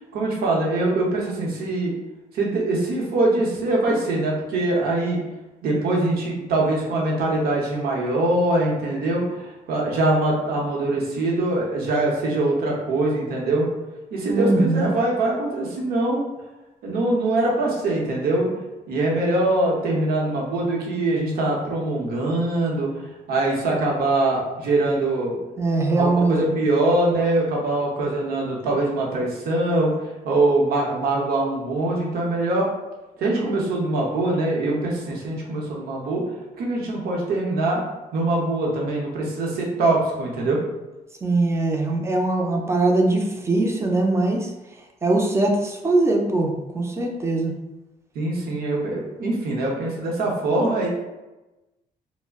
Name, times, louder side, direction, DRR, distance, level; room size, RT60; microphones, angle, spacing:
voice 1, 0.1-1.9 2.3-5.2 5.6-13.7 14.1-16.3 16.8-18.5 18.9-25.4 25.9-32.7 33.2-36.2 36.6-37.8 38.1-40.6 48.1-50.9, right 2 dB, 80° right, -2 dB, 0.8 m, -23 dB
voice 2, 14.3-14.9 25.6-26.6 41.2-44.5 45.0-47.5, right 2 dB, 20° right, 1 dB, 0.4 m, -21 dB
2.3 x 2.0 x 3.4 m, 1.0 s
cardioid pair, 140°, 15 cm